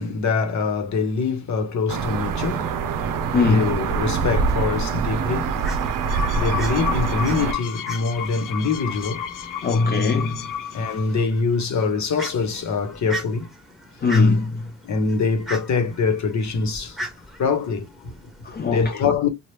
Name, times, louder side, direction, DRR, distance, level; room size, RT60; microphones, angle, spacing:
voice 1, 0.0-2.9 3.2-5.8 6.2-9.3 10.7-13.5 14.8-17.0 17.4-18.3 18.7-19.3, left 5 dB, 60° left, 1.0 m, -24 dB
sound 1, 1.9-7.5, right 5 dB, 90° right, 0.5 m, -24 dB
voice 2, 3.3-3.6 9.6-10.5 14.0-14.6 18.4-18.9, left 3 dB, 30° left, 0.4 m, -19 dB
Fowl, 5.0-18.7, right 1 dB, ahead, 1.2 m, -40 dB
sound 2, 5.9-11.2, left 9 dB, 85° left, 0.6 m, -32 dB
3.0 x 2.3 x 3.3 m
wide cardioid pair, 135°, 31 cm